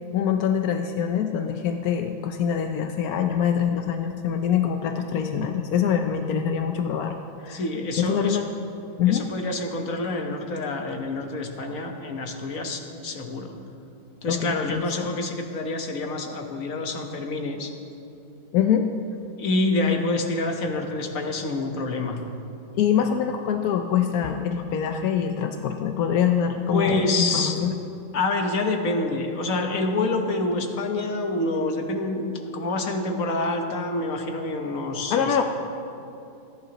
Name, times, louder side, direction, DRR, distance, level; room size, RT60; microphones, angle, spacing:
voice 1, 0.1-7.1 7.4-7.6 8.0-8.5 9.0-9.3 14.3-15.1 18.5-18.9 22.7-27.7 35.1-35.4, left 8 dB, 70° left, 5 dB, 0.9 m, -24 dB
voice 2, 7.5-8.4 9.1-13.5 14.2-17.7 19.4-22.2 26.7-27.6 28.1-35.4, left 2 dB, 45° left, 3 dB, 1.4 m, -27 dB
28.0 x 10.5 x 3.0 m, 2.7 s
omnidirectional pair, 2.2 m